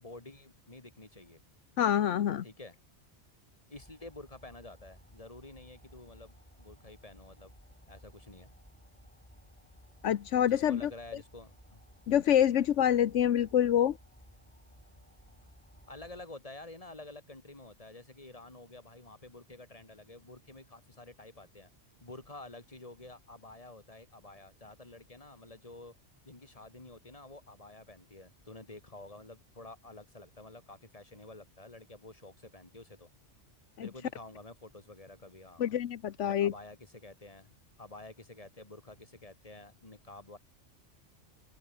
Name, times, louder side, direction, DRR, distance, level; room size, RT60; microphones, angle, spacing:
voice 1, 0.0-1.4 2.4-2.8 3.7-7.5 7.9-8.5 10.5-11.8 15.9-21.7 22.0-25.9 26.2-33.1 33.8-35.7 36.2-40.4, left 2 dB, 30° left, 2.9 m, -50 dB
voice 2, 1.8-2.4 10.0-10.9 12.1-14.0 33.8-33.9 35.6-36.5, left 10 dB, 80° left, 1.1 m, -26 dB
sound 1, 3.7-16.2, equal, 5° left, 5.9 m, -58 dB
omnidirectional pair, 1.2 m